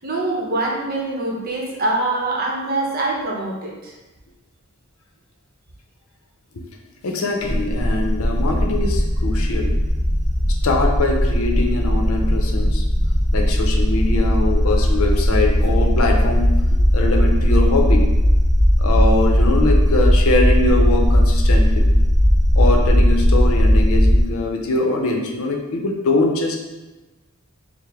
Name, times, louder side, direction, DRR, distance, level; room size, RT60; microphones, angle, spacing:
voice 1, 0.0-3.9, right 2 dB, 45° right, -1 dB, 0.7 m, -24 dB
voice 2, 7.0-9.7 10.6-12.8 13.3-16.5 16.9-18.1 18.8-21.9 22.6-26.6, left 2 dB, 90° left, 2 dB, 0.6 m, -22 dB
sound 1, 7.4-24.2, equal, 30° left, 0.7 m, -17 dB
4.7 x 2.0 x 3.4 m, 1.1 s
head